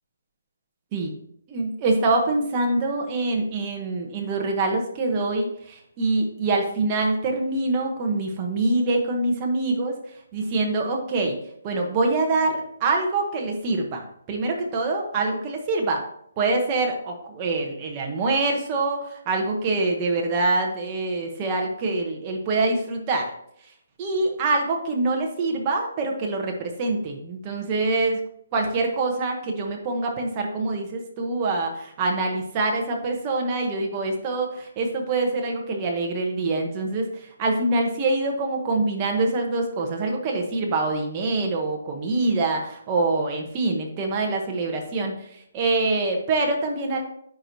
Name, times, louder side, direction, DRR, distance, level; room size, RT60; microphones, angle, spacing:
voice 1, 1.5-9.9 10.3-11.4 11.6-16.1 16.4-23.3 24.0-28.2 28.5-45.3 45.5-47.0, right 2 dB, 20° right, 1 dB, 0.8 m, -25 dB
9.5 x 4.5 x 2.7 m, 0.71 s
hypercardioid pair, 175°, 0 cm